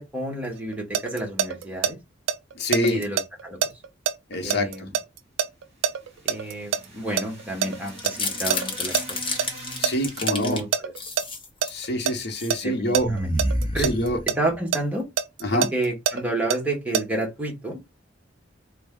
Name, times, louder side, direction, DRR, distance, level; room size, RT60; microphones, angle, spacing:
voice 1, 0.0-2.0 2.8-3.7 4.4-4.9 6.2-9.2 10.2-10.9 11.9-12.0 12.6-13.3 13.7-13.9 14.3-15.1 15.5-17.8, right 1 dB, 10° right, 1.0 m, -30 dB
sound 1, 0.6-1.9 2.3-6.8 7.2-9.0 9.4-9.5 9.8-11.2 11.6-12.1 12.5-14.4 14.7-17.0, right 7 dB, 85° right, 0.3 m, -25 dB
voice 2, 2.6-3.0 4.3-4.7 9.8-10.6 11.7-13.1 13.8-14.2 15.4-15.7, left 1 dB, 60° left, 0.8 m, -25 dB
sound 2, 5.7-10.6, right 1 dB, 35° right, 1.8 m, -43 dB
sound 3, 7.9-10.6 11.0-11.8 12.2-12.6 12.9-14.5, left 1 dB, 25° left, 0.9 m, -29 dB
3.3 x 2.2 x 3.5 m
head